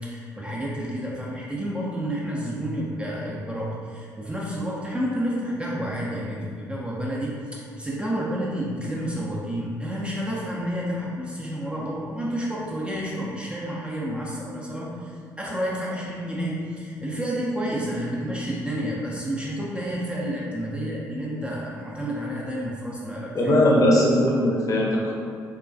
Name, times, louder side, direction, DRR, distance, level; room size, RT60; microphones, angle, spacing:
voice 1, 0.0-23.5, equal, 10° right, -5 dB, 0.4 m, -30 dB
voice 2, 23.3-25.1, left 1 dB, 35° left, -3 dB, 0.6 m, -19 dB
2.2 x 2.1 x 2.5 m, 2.2 s
figure-of-eight pair, 45°, 10 cm